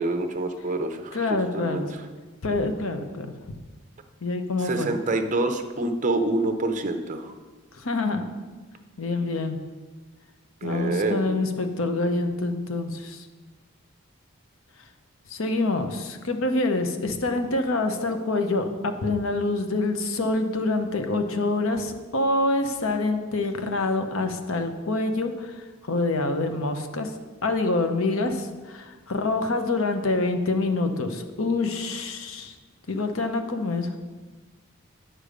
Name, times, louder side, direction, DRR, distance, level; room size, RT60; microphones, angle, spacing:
voice 1, 0.0-2.0 4.6-7.3 10.6-11.4, right 2 dB, 35° right, 7 dB, 0.7 m, -27 dB
voice 2, 1.1-1.9 2.4-3.3 4.2-4.9 7.8-8.3 9.0-9.6 10.6-13.3 15.3-25.5 25.9-27.1 27.4-32.5 32.9-33.9, left 2 dB, 70° left, 7 dB, 0.8 m, -26 dB
9.0 x 6.7 x 5.1 m, 1.3 s
head